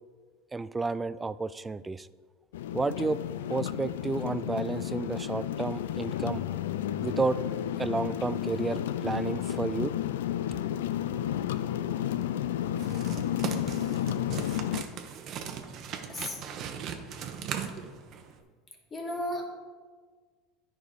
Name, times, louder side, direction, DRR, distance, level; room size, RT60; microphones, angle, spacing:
voice 1, 0.5-2.1 2.7-3.2 3.5-6.5 7.0-7.4 7.8-9.9, right 3 dB, 15° right, 16 dB, 0.3 m, -31 dB
sound 1, 2.5-14.8, left 11 dB, 85° left, 0.3 m, -32 dB
sound 2, 12.8-18.4, right 8 dB, 50° right, 0.9 m, -38 dB
voice 2, 16.1-16.4 18.9-19.4, left 1 dB, 25° left, 0 dB, 2.0 m, -34 dB
10.0 x 5.0 x 4.7 m, 1.5 s
supercardioid pair, 100°, 0 cm